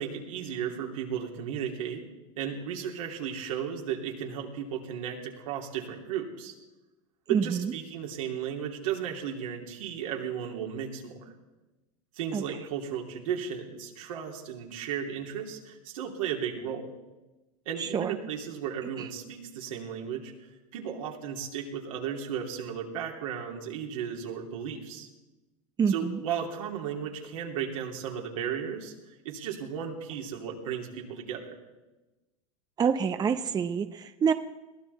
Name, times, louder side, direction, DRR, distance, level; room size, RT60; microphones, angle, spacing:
voice 1, 0.0-2.0 2.4-6.5 7.3-11.2 12.1-16.9 17.6-20.3 20.7-25.1 25.9-28.9 29.2-31.5, right 8 dB, 75° right, 1 dB, 3.2 m, -35 dB
voice 2, 7.3-7.7 12.3-12.4 17.8-18.1 19.0-19.1 25.8-26.2 32.8-34.3, right 6 dB, 25° right, 10 dB, 0.7 m, -27 dB
22.0 x 15.5 x 4.2 m, 1.1 s
hypercardioid pair, 110°, 18 cm